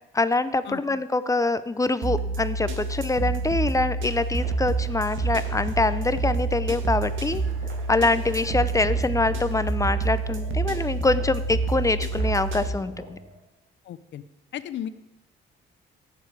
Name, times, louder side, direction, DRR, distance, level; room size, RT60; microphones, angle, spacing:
voice 1, 0.1-7.4 7.9-13.2, left 2 dB, 15° left, 14 dB, 0.6 m, -25 dB
sound 1, 2.0-12.7, right 3 dB, 75° right, 1.6 m, -28 dB
sound 2, 4.4-13.4, equal, 60° right, 4.0 m, -45 dB
voice 2, 13.8-14.2 14.5-14.9, left 10 dB, 65° left, 13 dB, 0.7 m, -34 dB
15.5 x 6.9 x 4.8 m, 0.89 s
cardioid pair, 90°, 20 cm